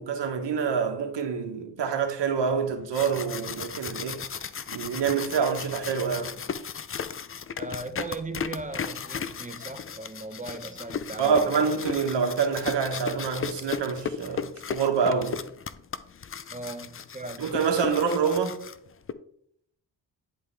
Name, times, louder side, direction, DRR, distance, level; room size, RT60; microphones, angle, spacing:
voice 1, 0.0-4.2 4.7-6.3 11.2-15.4 17.4-18.6, right 6 dB, 70° right, 1.3 m, -26 dB
sound 1, 2.7-19.1, left 6 dB, 30° left, 0.5 m, -36 dB
voice 2, 7.6-11.9 16.5-17.5, right 2 dB, 15° right, 0.9 m, -38 dB
10.5 x 3.7 x 3.3 m
cardioid pair, 60°, 44 cm